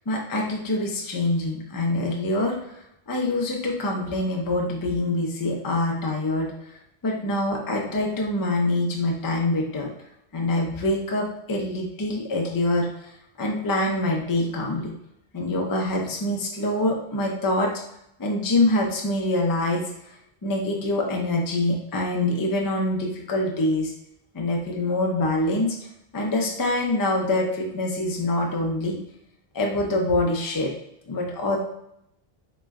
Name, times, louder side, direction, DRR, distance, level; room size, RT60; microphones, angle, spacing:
voice 1, 0.1-2.8 3.1-6.5 7.0-9.9 10.3-12.9 13.4-14.9 15.3-17.7 18.2-19.9 20.4-23.9 24.3-25.7 26.1-29.0 29.5-30.7 31.1-31.6, left 2 dB, 30° left, 0 dB, 0.4 m, -25 dB
3.0 x 2.1 x 3.5 m, 0.79 s
omnidirectional pair, 1.1 m